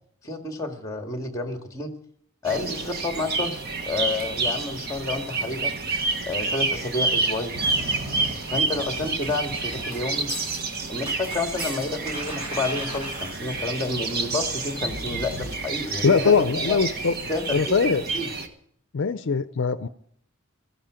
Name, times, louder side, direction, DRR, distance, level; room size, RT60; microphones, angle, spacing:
voice 1, 0.2-1.9 2.4-5.7 6.3-7.6 8.5-10.3 10.9-16.8 17.3-17.8 18.1-18.3, left 2 dB, 15° left, 4 dB, 1.9 m, -30 dB
sound 1, 2.5-18.5, right 3 dB, 45° right, 1.4 m, -29 dB
sound 2, 2.6-14.6, left 2 dB, 10° right, 7.0 m, -46 dB
sound 3, 7.6-15.5, right 1 dB, 25° right, 4.5 m, -39 dB
voice 2, 16.0-17.1 17.5-18.0 18.9-19.9, left 5 dB, 60° left, 12 dB, 0.5 m, -21 dB
16.0 x 14.0 x 5.0 m, 0.64 s
head